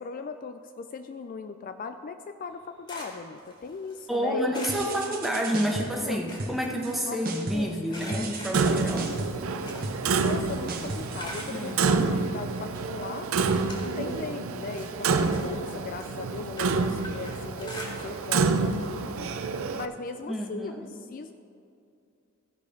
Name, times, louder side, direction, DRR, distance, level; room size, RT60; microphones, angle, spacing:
voice 1, 0.0-4.5 4.9-5.0 6.0-6.3 7.1-7.2 7.5-9.0 10.2-13.3 13.8-19.3 19.7-21.3, left 5 dB, 40° left, 8 dB, 0.3 m, -38 dB
sound 1, 2.5-4.1 4.5-5.8 6.1-7.4 7.9-10.4 10.7-11.8 12.5-12.6 13.1-14.3 14.6-18.4 18.7-18.9 19.2-19.3 20.6-20.7, equal, 25° left, 1.8 m, -44 dB
voice 2, 4.1-9.1 11.5-12.1 20.3-20.9, equal, ahead, -1 dB, 1.0 m, -29 dB
sound 2, 4.7-6.0 6.4-7.0 7.2-7.8 8.1-12.1, right 2 dB, 45° right, 1.0 m, -37 dB
Clock, 8.5-19.9, right 4 dB, 80° right, 0.5 m, -28 dB
15.5 x 5.2 x 5.1 m, 2.5 s
head